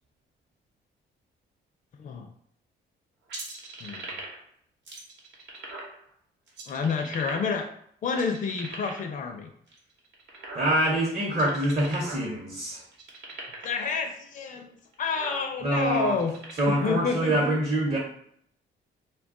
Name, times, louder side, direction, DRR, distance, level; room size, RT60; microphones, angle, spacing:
sound 1, 3.3-4.5 4.9-5.9 6.5-7.7 8.1-9.1 9.7-10.9 11.3-12.3 12.5-12.6 12.9-13.8 14.5-14.6 14.9-15.4 16.1-17.0, right 2 dB, 65° right, 0.9 m, -40 dB
voice 1, 6.7-7.7 8.0-9.5 13.6-16.3 16.7-17.5, left 5 dB, 40° left, 4 dB, 0.4 m, -29 dB
voice 2, 10.5-12.8 15.6-16.2 16.6-18.0, right 1 dB, 35° right, -4 dB, 0.8 m, -25 dB
2.3 x 2.2 x 3.6 m, 0.66 s
cardioid pair, 90°, 20 cm